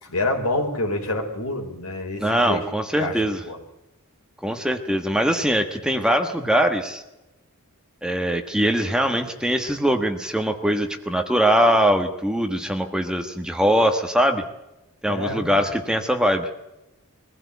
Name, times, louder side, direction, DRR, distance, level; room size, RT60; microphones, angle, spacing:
voice 1, 0.0-2.6 3.0-3.6 15.0-15.7, left 2 dB, 70° left, 4 dB, 4.3 m, -27 dB
voice 2, 2.2-3.4 4.4-7.0 8.0-14.4 15.0-16.5, equal, 5° right, 6 dB, 1.3 m, -22 dB
22.5 x 15.5 x 8.3 m, 0.96 s
head